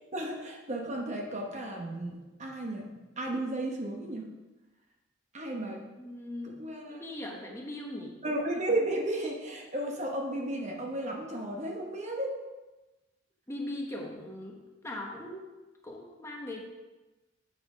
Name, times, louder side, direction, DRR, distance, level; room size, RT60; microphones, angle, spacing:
voice 1, 0.1-4.3 5.3-5.8 6.4-7.0 8.2-12.4, right 1 dB, 35° right, 1 dB, 1.0 m, -34 dB
voice 2, 6.0-8.2 13.5-15.4 15.8-16.6, left 1 dB, 15° left, 0 dB, 1.0 m, -40 dB
7.5 x 5.9 x 5.0 m, 1.1 s
head